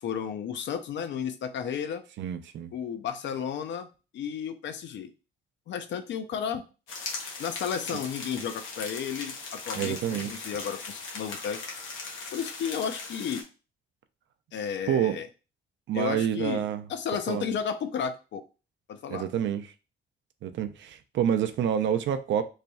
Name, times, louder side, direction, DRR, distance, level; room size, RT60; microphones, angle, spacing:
voice 1, 0.0-2.0 2.7-3.9 4.1-5.1 5.7-6.6 7.4-11.6 11.9-12.0 12.3-13.4 14.5-15.3 15.9-16.6 16.9-18.4 18.9-19.3, left 7 dB, 65° left, 0.6 m, -33 dB
voice 2, 2.2-2.7 9.8-10.3 14.9-15.2 15.9-16.8 17.3-17.5 19.1-19.7 20.4-22.4, right 9 dB, 70° right, 0.5 m, -28 dB
sound 1, 6.9-13.4, left 4 dB, 85° left, 1.0 m, -39 dB
3.2 x 2.3 x 4.0 m
cardioid pair, 90°, 20 cm